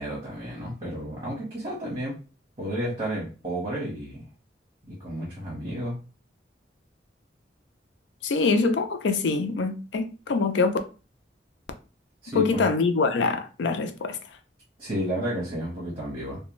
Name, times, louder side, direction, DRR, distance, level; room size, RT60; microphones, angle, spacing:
voice 1, 0.0-2.2 2.6-4.2 4.9-6.0 12.2-12.6 14.8-16.4, equal, 35° right, 1.1 m, -32 dB
voice 2, 8.2-10.8 12.3-14.2, left 4 dB, 85° left, 0.4 m, -24 dB
2.4 x 2.2 x 3.0 m
head